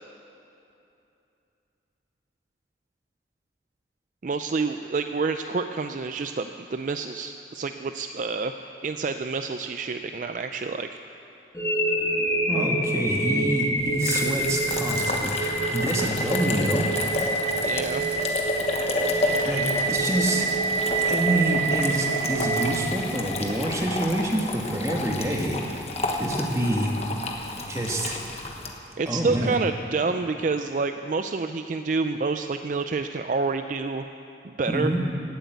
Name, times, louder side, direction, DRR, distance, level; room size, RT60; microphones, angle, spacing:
voice 1, 4.2-8.5 8.8-10.9 17.6-18.0 29.0-34.0 34.4-35.0, right 4 dB, 45° right, 8 dB, 0.4 m, -28 dB
sound 1, 11.5-23.6, right 2 dB, 15° left, 1.8 m, -27 dB
voice 2, 12.5-16.9 19.4-20.5 21.1-25.8 26.2-27.0 27.7-28.2 29.1-29.5 34.7-35.0, right 1 dB, 15° right, 0 dB, 1.5 m, -27 dB
sound 2, 13.8-28.7, left 2 dB, 35° left, 1.2 m, -31 dB
16.0 x 8.2 x 9.3 m, 2.8 s
head